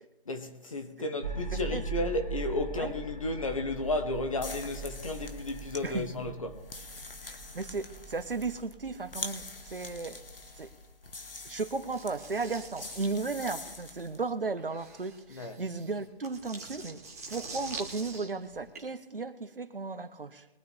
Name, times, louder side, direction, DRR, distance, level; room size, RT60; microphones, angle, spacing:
voice 1, 0.2-6.7 15.3-15.6, left 2 dB, 35° left, 1.3 m, -33 dB
sound 1, 1.2-10.6, right 3 dB, 40° right, 2.9 m, -41 dB
sound 2, 4.3-14.2, left 3 dB, 65° left, 1.7 m, -45 dB
voice 2, 5.8-6.4 7.2-10.2 10.5-10.7 11.4-20.5, right 4 dB, 60° right, 1.2 m, -35 dB
sound 3, 11.9-18.8, right 3 dB, 15° right, 1.2 m, -45 dB
22.5 x 9.4 x 3.4 m
figure-of-eight pair, 160°, 31 cm